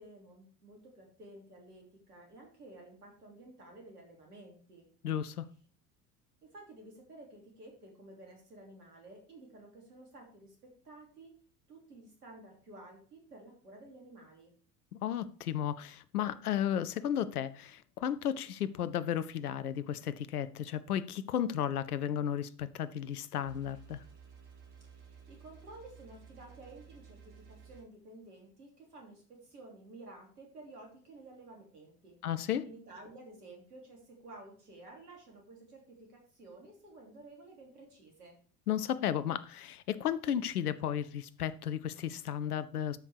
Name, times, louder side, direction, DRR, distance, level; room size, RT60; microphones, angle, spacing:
voice 1, 0.0-4.9 6.4-11.3 11.7-14.5 24.8-32.2 32.6-38.4, right 2 dB, 75° right, 3.1 m, -53 dB
voice 2, 5.0-5.5 15.0-24.0 32.2-32.6 38.7-43.0, left 10 dB, 75° left, 0.7 m, -34 dB
sound 1, 23.4-27.8, right 6 dB, 50° right, 2.9 m, -55 dB
12.5 x 5.3 x 4.7 m
figure-of-eight pair, 65°, 47 cm